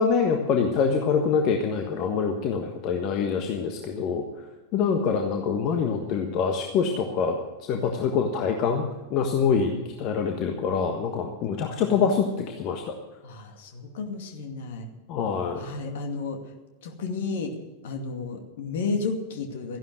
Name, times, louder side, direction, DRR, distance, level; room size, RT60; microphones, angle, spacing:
voice 1, 0.0-4.2 4.7-7.4 7.7-12.9 15.1-15.7, left 6 dB, 40° left, 4 dB, 1.4 m, -25 dB
voice 2, 13.2-14.9 15.6-16.5 16.8-17.5 17.8-19.8, left 4 dB, 55° left, 4 dB, 2.4 m, -32 dB
14.5 x 11.0 x 6.4 m, 1.2 s
figure-of-eight pair, 90°, 0 cm